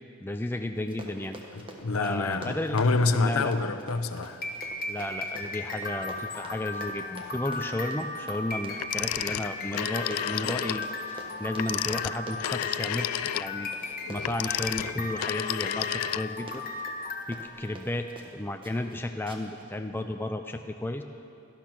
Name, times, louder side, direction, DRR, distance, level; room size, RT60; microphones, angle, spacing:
voice 1, 0.2-1.4 1.9-2.8 3.2-3.5 4.9-16.7 17.3-18.1 18.3-21.0, left 1 dB, 10° left, 5 dB, 0.4 m, -33 dB
Run, 0.8-18.3 18.6-18.9 19.3-19.6 20.0-20.1, right 1 dB, 25° right, 1.3 m, -46 dB
voice 2, 1.5-4.4, left 3 dB, 75° left, 9 dB, 0.8 m, -27 dB
sound 1, 4.3-17.5, left 2 dB, 40° left, 1.4 m, -36 dB
Telephone, 8.8-10.9 11.5-16.6, left 13 dB, 90° left, 0.3 m, -32 dB
17.5 x 12.0 x 6.0 m, 2.7 s
head